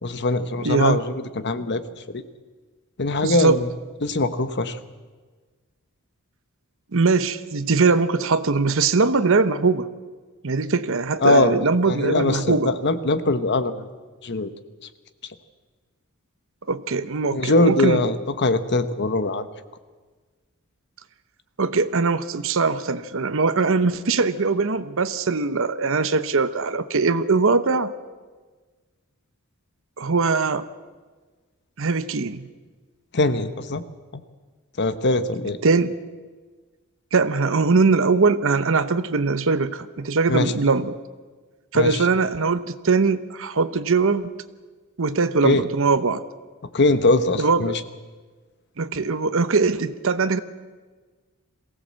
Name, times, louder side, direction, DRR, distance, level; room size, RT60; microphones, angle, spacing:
voice 1, 0.0-1.8 2.1-2.2 3.0-3.7 4.0-4.8 11.2-11.5 11.9-13.8 14.2-14.5 17.3-19.5 33.1-33.8 34.8-35.6 40.3-40.5 41.7-42.0 45.4-45.6 46.7-47.8, left 2 dB, 50° left, 11 dB, 1.1 m, -21 dB
voice 2, 0.6-1.0 3.2-3.6 6.9-9.9 10.4-12.7 16.7-18.0 21.6-27.9 30.0-30.6 31.8-32.5 35.6-35.9 37.1-41.0 41.7-44.3 45.0-46.2 47.4-47.8 48.8-50.4, right 4 dB, 65° right, 11 dB, 0.8 m, -21 dB
22.5 x 16.0 x 7.5 m, 1.4 s
head